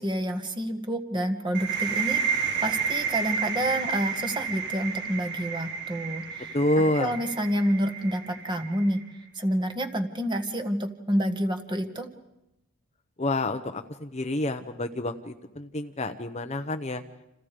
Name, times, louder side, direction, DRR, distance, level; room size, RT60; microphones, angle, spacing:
voice 1, 0.0-6.6 7.0-9.0 9.4-12.1, equal, 20° right, 6 dB, 1.8 m, -28 dB
sound 1, 1.5-9.1, right 6 dB, 50° right, 1.8 m, -31 dB
voice 2, 6.5-7.2 13.2-17.0, left 1 dB, 30° left, 7 dB, 1.0 m, -28 dB
30.0 x 28.0 x 5.1 m, 0.92 s
head